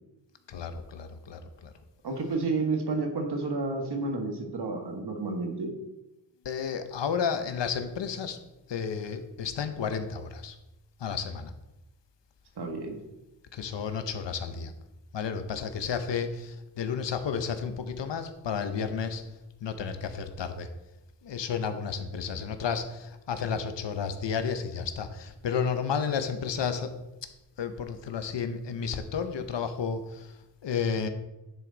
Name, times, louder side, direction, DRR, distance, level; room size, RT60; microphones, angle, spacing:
voice 1, 0.5-1.7 6.4-8.4 8.7-10.6 11.0-11.5 13.5-14.7 15.1-19.2 19.6-20.7 21.2-27.0 27.6-30.3 30.6-31.1, left 6 dB, 75° left, 9 dB, 0.9 m, -32 dB
voice 2, 2.0-5.7 12.6-13.0, right 3 dB, 60° right, 3 dB, 1.5 m, -30 dB
10.5 x 6.0 x 4.0 m, 0.97 s
wide cardioid pair, 165°, 44 cm